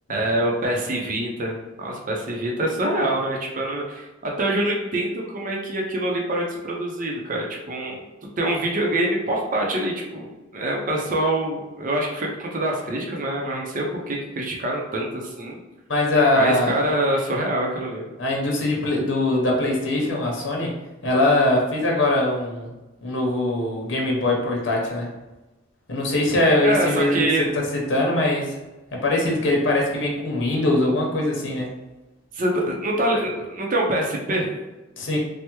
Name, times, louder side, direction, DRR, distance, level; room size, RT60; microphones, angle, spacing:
voice 1, 0.1-7.9 8.4-15.6 16.3-18.1 26.6-27.5 32.3-34.5, right 1 dB, 45° right, -1 dB, 0.6 m, -25 dB
voice 2, 15.9-16.8 18.2-20.7 21.0-22.7 23.0-25.1 25.9-27.2 27.5-27.6 27.9-28.5 28.9-31.7 35.0-35.2, left 2 dB, 90° left, -1 dB, 0.7 m, -22 dB
3.3 x 2.1 x 2.9 m, 1.1 s
head